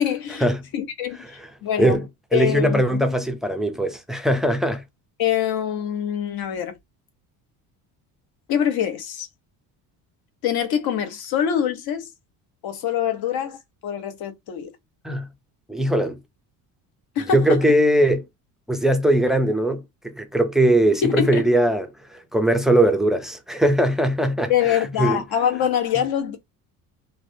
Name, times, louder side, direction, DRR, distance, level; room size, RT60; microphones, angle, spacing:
voice 1, 0.0-0.5 0.7-2.0 2.3-3.0 5.2-6.8 8.5-9.3 10.4-12.1 12.6-14.8 17.2-17.6 21.0-21.5 24.5-26.4, left 9 dB, 60° left, 0.9 m, -24 dB
voice 2, 2.3-4.8 15.0-15.3 15.7-16.2 17.3-18.3 18.7-25.2, right 1 dB, ahead, 0.4 m, -20 dB
3.2 x 2.1 x 2.6 m
cardioid pair, 120°, 41 cm